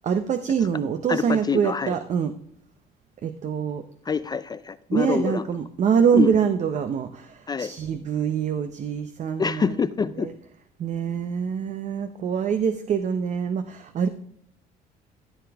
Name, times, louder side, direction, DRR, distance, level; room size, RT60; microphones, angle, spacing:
voice 1, 0.0-2.3 3.2-3.9 4.9-9.7 10.2-10.3 10.8-14.1, right 7 dB, 45° right, 9 dB, 0.7 m, -25 dB
voice 2, 1.1-1.9 4.1-5.5 6.1-6.3 7.5-7.7 9.4-10.3, left 5 dB, 25° left, 13 dB, 0.4 m, -26 dB
13.5 x 6.8 x 3.5 m, 0.70 s
cardioid pair, 110°, 17 cm